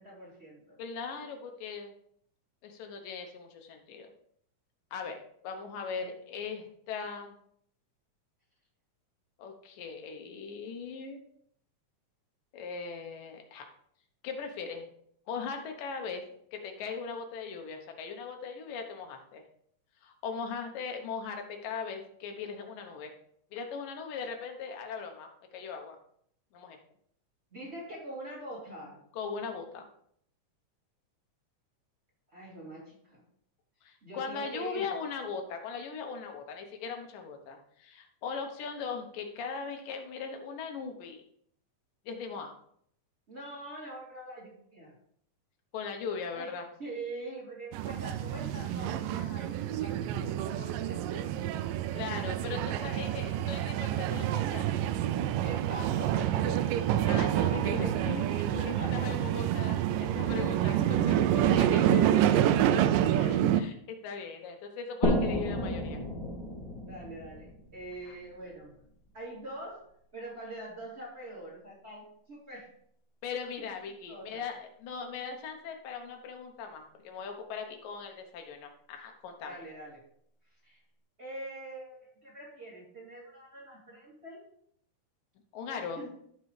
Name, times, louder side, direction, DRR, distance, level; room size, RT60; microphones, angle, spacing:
voice 1, 0.0-0.8 27.5-29.0 32.3-33.2 34.0-34.9 43.3-44.9 46.3-46.5 46.8-51.8 52.8-53.0 55.4-57.6 58.6-59.1 66.9-68.7 69.1-69.8 70.1-72.7 73.6-73.7 74.1-74.4 79.4-80.0 80.6-80.8 81.2-84.5 85.7-86.1, right 1 dB, 20° right, -5 dB, 3.0 m, -44 dB
voice 2, 0.8-1.9 2.6-4.1 4.9-5.2 5.4-7.4 9.4-11.2 12.5-13.7 14.2-14.9 15.3-19.4 20.0-23.1 23.5-26.0 26.5-26.8 29.1-29.9 33.8-41.2 42.1-42.5 45.7-46.7 51.9-54.7 57.0-62.3 63.0-66.0 68.1-68.2 73.2-79.6 85.5-86.0, left 5 dB, 90° left, 4 dB, 2.7 m, -39 dB
sound 1, 47.7-63.6, right 11 dB, 90° right, 2.2 m, -28 dB
sound 2, 65.0-68.5, left 1 dB, 15° left, 1.9 m, -32 dB
14.0 x 4.7 x 3.2 m, 0.66 s
omnidirectional pair, 3.7 m